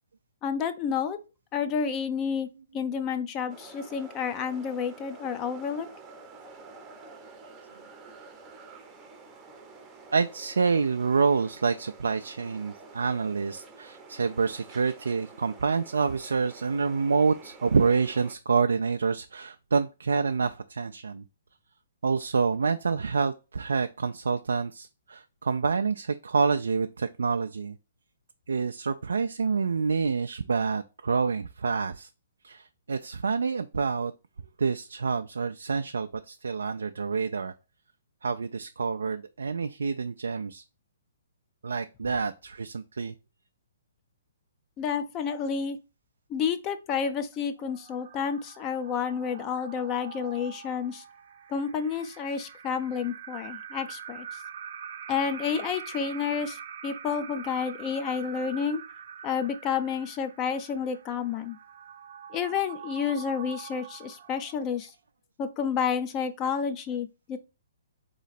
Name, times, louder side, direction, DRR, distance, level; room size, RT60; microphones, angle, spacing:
voice 1, 0.4-1.2 1.5-2.5 2.7-5.9 44.8-45.8 46.3-51.0 51.5-54.4 55.1-58.8 59.2-61.6 62.3-64.9 65.4-67.4, left 7 dB, 25° left, 0.6 m, -30 dB
sound 1, 3.5-18.4, right 3 dB, 15° right, 0.7 m, -49 dB
voice 2, 10.1-21.2 22.0-27.7 28.5-32.1 32.4-34.1 34.6-37.5 38.2-40.6 41.6-43.1, right 5 dB, 80° right, 0.3 m, -27 dB
sound 2, 47.6-65.0, right 8 dB, 55° right, 0.7 m, -44 dB
4.0 x 3.1 x 4.1 m
hypercardioid pair, 135°, 0 cm